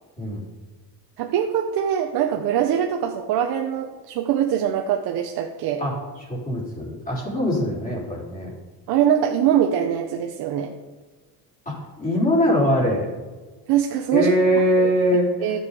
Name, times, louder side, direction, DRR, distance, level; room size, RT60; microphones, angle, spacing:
voice 1, 1.2-5.8 8.9-10.7 13.7-14.3 14.8-14.9 15.4-15.6, right 9 dB, 65° right, 3 dB, 0.9 m, -22 dB
voice 2, 6.3-8.5 11.7-13.1 14.1-15.5, equal, 20° left, -4 dB, 3.7 m, -22 dB
11.5 x 7.2 x 4.9 m, 1.3 s
cardioid pair, 140°, 40 cm